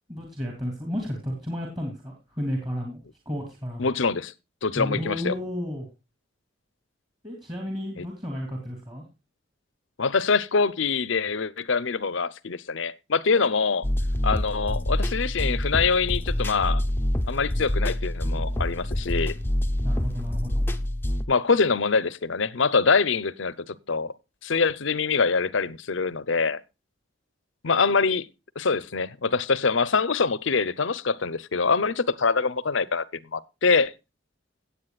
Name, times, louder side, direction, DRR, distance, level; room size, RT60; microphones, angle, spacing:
voice 1, 0.1-3.0 3.2-3.9 4.8-5.9 7.2-9.0 19.8-20.6, equal, 20° right, 3.1 m, -32 dB
voice 2, 3.8-4.3 4.6-5.3 8.0-8.1 10.0-13.9 14.2-16.8 17.3-19.4 21.3-24.1 24.4-26.6 27.6-28.3 28.6-33.0 33.3-33.9, left 4 dB, 70° left, 0.7 m, -24 dB
sound 1, 13.8-21.2, left 1 dB, 10° left, 0.7 m, -26 dB
17.5 x 8.5 x 2.3 m
head